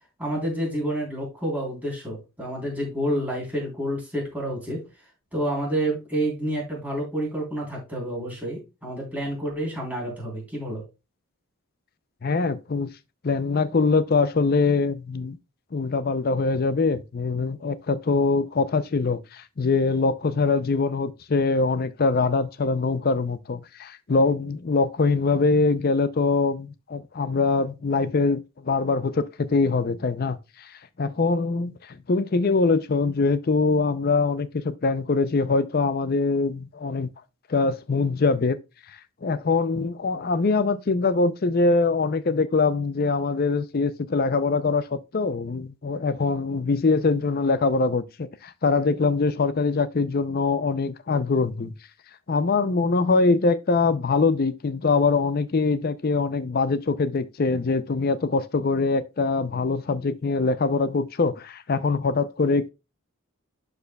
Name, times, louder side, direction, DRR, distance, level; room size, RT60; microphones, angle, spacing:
voice 1, 0.2-4.8 5.3-10.8, right 1 dB, 5° right, 3.5 m, -29 dB
voice 2, 12.2-12.9 13.2-15.4 15.7-30.7 31.0-37.1 37.5-38.6 39.2-51.7 52.3-62.7, left 4 dB, 45° left, 0.5 m, -23 dB
11.5 x 4.9 x 2.2 m
head